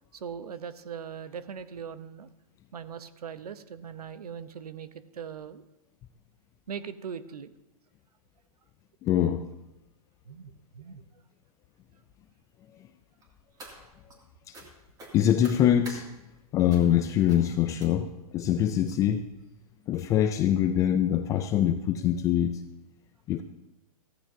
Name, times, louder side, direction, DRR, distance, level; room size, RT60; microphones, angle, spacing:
voice 1, 0.1-2.3 2.7-4.9 5.1-5.6 6.7-7.5 10.3-11.0, right 7 dB, 80° right, 13 dB, 0.9 m, -40 dB
voice 2, 9.0-9.4 14.5-14.6 15.1-16.1 16.5-19.3 19.9-22.6 23.3-23.4, left 10 dB, 15° left, 8 dB, 0.3 m, -24 dB
sound 1, 13.2-14.2 14.5-14.7 15.0-16.0 16.7-17.0 17.3-17.5 17.8-18.2 18.9-19.0 19.4-19.5 19.8-19.9, right 2 dB, 20° right, 2.5 m, -47 dB
15.5 x 14.0 x 2.8 m, 0.96 s
hypercardioid pair, 135°, 19 cm